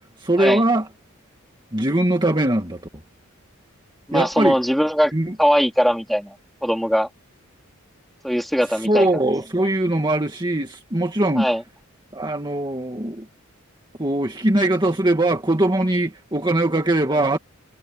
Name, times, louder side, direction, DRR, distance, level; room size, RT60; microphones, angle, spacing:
voice 1, 0.2-0.9 1.7-2.8 4.1-4.6 5.1-5.3 8.8-11.5 12.1-13.3 14.0-17.4, right 1 dB, 20° right, 2.0 m, -21 dB
voice 2, 4.1-5.1 5.4-6.3 6.6-7.1 8.2-9.1 11.4-11.6, equal, ahead, 3.5 m, -20 dB
head